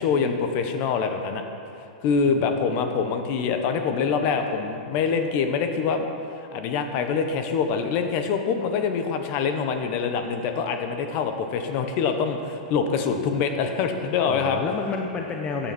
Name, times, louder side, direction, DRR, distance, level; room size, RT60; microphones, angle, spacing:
voice 1, 0.0-1.4 2.0-6.1 6.4-14.6, left 5 dB, 45° left, 6 dB, 1.3 m, -25 dB
voice 2, 2.2-2.9 14.3-15.7, left 4 dB, 25° left, 2 dB, 0.9 m, -31 dB
14.0 x 9.2 x 4.5 m, 2.6 s
hypercardioid pair, 120°, 4 cm